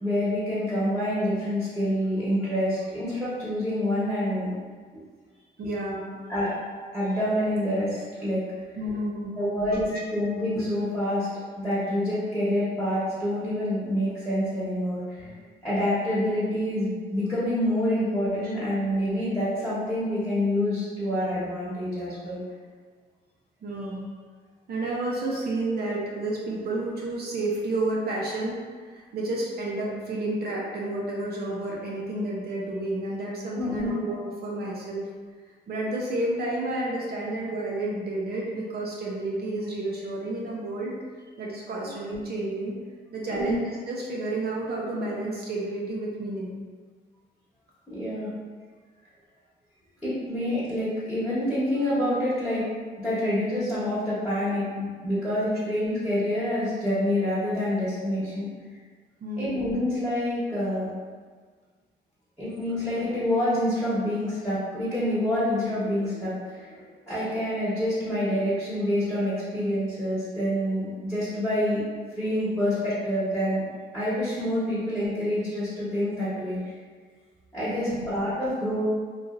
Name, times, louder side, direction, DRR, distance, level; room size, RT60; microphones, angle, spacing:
voice 1, 0.0-4.5 6.3-6.5 6.9-8.4 9.4-11.3 11.6-15.3 15.6-22.4 25.3-25.4 33.6-33.9 43.3-43.5 47.9-48.3 50.0-52.7 53.0-58.4 59.4-60.9 62.4-71.8 72.1-73.6 73.9-76.6 77.5-78.8, left 1 dB, ahead, -12 dB, 1.1 m, -27 dB
voice 2, 5.6-6.2 8.8-9.5 9.9-10.0 23.6-24.1 24.7-28.6 28.9-35.1 35.7-40.9 41.4-42.8 43.1-46.6 59.2-59.7 77.8-78.1, right 2 dB, 60° right, -3 dB, 0.6 m, -30 dB
3.1 x 2.5 x 2.5 m, 1.6 s
cardioid pair, 100°, 19 cm